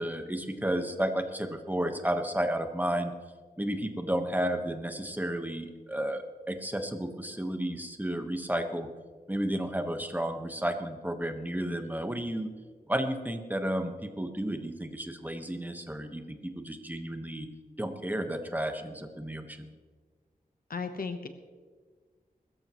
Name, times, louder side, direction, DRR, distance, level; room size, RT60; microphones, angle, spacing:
voice 1, 0.0-3.1 3.6-8.9 9.3-12.5 12.9-17.5 17.8-19.7, right 1 dB, 10° right, 6 dB, 1.3 m, -32 dB
voice 2, 20.7-21.3, left 4 dB, 70° left, 8 dB, 1.1 m, -35 dB
22.0 x 13.5 x 3.1 m, 1.5 s
wide cardioid pair, 85°, 15 cm